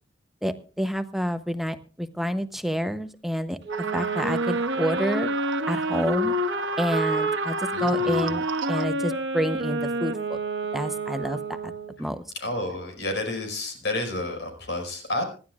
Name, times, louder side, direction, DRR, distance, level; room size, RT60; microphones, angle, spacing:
voice 1, 0.4-3.6 3.9-5.3 5.7-6.3 6.8-10.4 10.7-11.7 12.0-12.3, equal, ahead, 10 dB, 0.8 m, -28 dB
Wind instrument woodwind instrument, 3.6-12.0, right 1 dB, 65° right, 1.4 m, -28 dB
sound 1, 3.7-8.9, right 5 dB, 85° right, 0.9 m, -34 dB
voice 2, 7.7-8.3 12.0-12.1 12.3-15.2, left 2 dB, 65° left, 4 dB, 5.3 m, -30 dB
25.5 x 11.5 x 2.4 m, 0.36 s
head